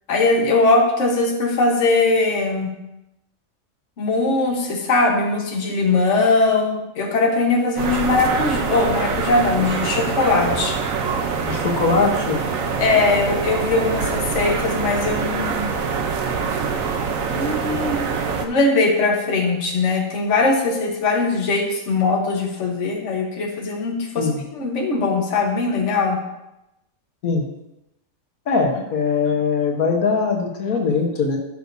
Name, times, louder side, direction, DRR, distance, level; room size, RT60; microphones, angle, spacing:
voice 1, 0.1-2.7 4.0-10.8 12.8-15.7 17.3-18.1 18.4-26.2, left 3 dB, 60° left, 1 dB, 1.5 m, -20 dB
sound 1, 7.8-18.5, right 5 dB, 70° right, 1.3 m, -24 dB
voice 2, 11.4-12.4 24.2-24.4 27.2-27.4 28.5-31.4, left 4 dB, 90° left, 1 dB, 1.7 m, -21 dB
14.5 x 6.4 x 2.7 m, 0.91 s
omnidirectional pair, 1.5 m